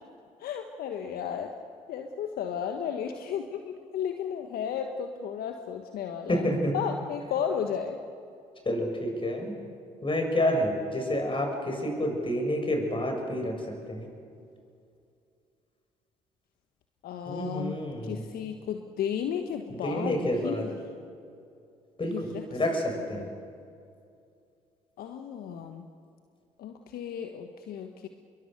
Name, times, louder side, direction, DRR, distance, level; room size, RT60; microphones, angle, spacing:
voice 1, 0.4-1.5 1.9-6.4 6.7-8.0 17.0-20.2 20.4-20.7 22.1-22.4 23.1-23.3 25.0-25.9 26.6-28.1, left 8 dB, 65° left, 6 dB, 1.3 m, -34 dB
voice 2, 6.3-6.7 8.6-9.5 10.0-14.1 17.3-18.2 19.8-20.6 22.0-23.3, left 1 dB, 30° left, 3 dB, 6.8 m, -29 dB
26.5 x 22.5 x 6.8 m, 2.4 s
hypercardioid pair, 55°, 16 cm